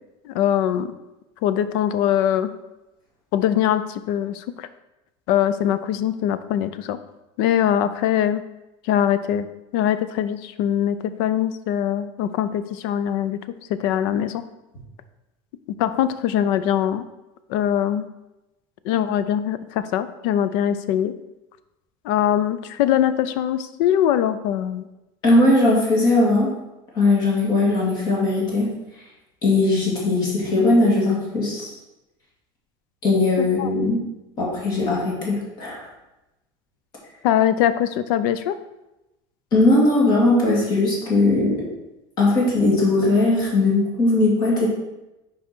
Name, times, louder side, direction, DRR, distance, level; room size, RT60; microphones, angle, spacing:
voice 1, 0.2-0.9 1.4-2.5 3.3-4.7 5.3-7.0 7.4-8.4 8.9-9.5 9.7-13.4 13.7-14.4 15.8-17.0 17.5-18.0 18.8-21.1 22.0-24.9 33.4-33.7 37.2-38.5, left 10 dB, 65° left, 13 dB, 0.5 m, -22 dB
voice 2, 25.2-26.5 26.9-28.7 29.4-31.7 33.0-34.0 34.4-35.8 39.5-41.6 42.2-44.7, left 2 dB, 35° left, -4 dB, 2.0 m, -19 dB
5.9 x 4.8 x 4.4 m, 0.98 s
cardioid pair, 175°, 12 cm